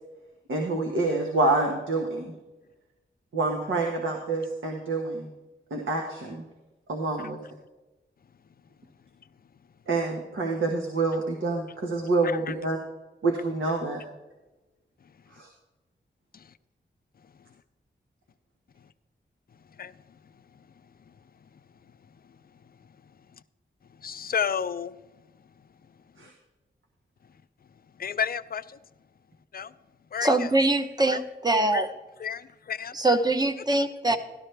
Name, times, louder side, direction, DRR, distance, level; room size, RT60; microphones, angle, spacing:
voice 1, 0.5-2.3 3.3-5.3 5.7-6.4 6.9-7.4 9.9-12.8 13.2-14.0 15.3-15.5 26.2-26.3, right 3 dB, 85° right, 1 dB, 1.3 m, -27 dB
voice 2, 24.0-24.9 28.0-28.6 29.5-29.7 30.1-30.3 31.1-31.2 31.7-31.8 32.2-32.4 32.7-32.9, left 7 dB, 50° left, 13 dB, 0.4 m, -30 dB
voice 3, 30.2-31.9 32.9-34.2, right 2 dB, 20° right, 8 dB, 0.8 m, -23 dB
13.0 x 12.0 x 3.3 m, 1.1 s
wide cardioid pair, 100°, 20 cm